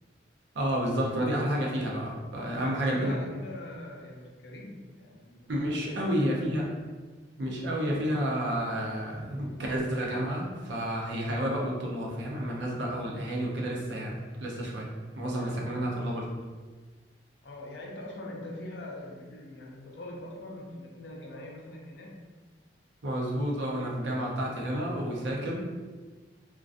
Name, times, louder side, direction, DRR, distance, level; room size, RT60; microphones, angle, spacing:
voice 1, 0.5-3.2 5.5-6.8 7.4-16.3 23.0-25.7, equal, 85° right, -2 dB, 0.6 m, -30 dB
voice 2, 2.5-6.4 15.4-15.8 17.4-22.2, left 1 dB, 75° left, -1 dB, 0.5 m, -43 dB
2.4 x 2.2 x 2.5 m, 1.3 s
head